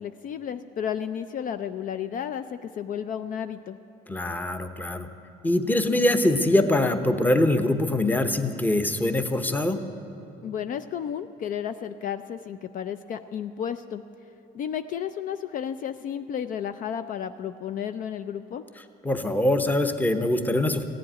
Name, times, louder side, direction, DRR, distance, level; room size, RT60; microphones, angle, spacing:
voice 1, 0.0-3.8 10.4-14.0 14.5-18.6, left 8 dB, 50° left, 10 dB, 0.4 m, -32 dB
voice 2, 4.1-5.1 5.4-9.8 19.0-20.8, left 1 dB, 10° left, 8 dB, 0.8 m, -23 dB
15.0 x 7.7 x 9.9 m, 2.7 s
cardioid pair, 110°, 17 cm